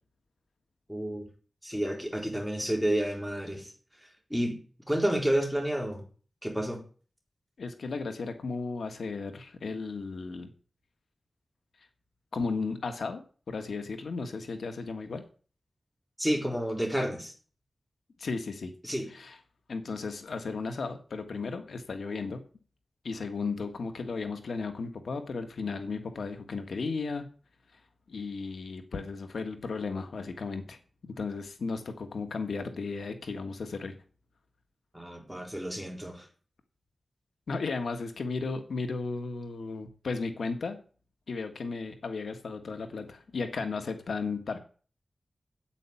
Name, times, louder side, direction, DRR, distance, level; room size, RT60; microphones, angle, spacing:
voice 1, 0.9-1.3 1.6-3.7 4.3-4.6 4.9-6.0 6.4-6.8 16.2-17.3 18.8-19.1 34.9-36.3, right 1 dB, ahead, 1 dB, 4.1 m, -30 dB
voice 2, 7.6-10.5 12.3-13.2 13.5-15.2 18.2-18.7 19.1-19.4 19.7-22.4 23.0-27.2 28.1-30.8 31.0-33.9 37.5-40.8 41.3-44.6, left 4 dB, 90° left, 7 dB, 1.6 m, -35 dB
9.1 x 8.9 x 7.1 m, 0.39 s
wide cardioid pair, 95°, 0 cm